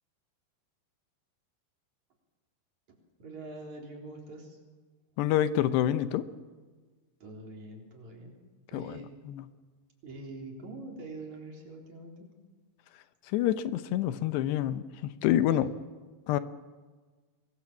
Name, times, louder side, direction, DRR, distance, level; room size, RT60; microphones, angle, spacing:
voice 1, 2.9-4.6 7.2-8.4 8.7-9.1 10.0-12.3 15.6-15.8, right 2 dB, 45° right, 1 dB, 4.9 m, -44 dB
voice 2, 5.2-6.3 8.7-9.0 9.3-9.4 13.3-15.7 16.3-16.4, left 12 dB, 85° left, 12 dB, 3.1 m, -27 dB
26.5 x 22.0 x 7.4 m, 1.4 s
omnidirectional pair, 4.8 m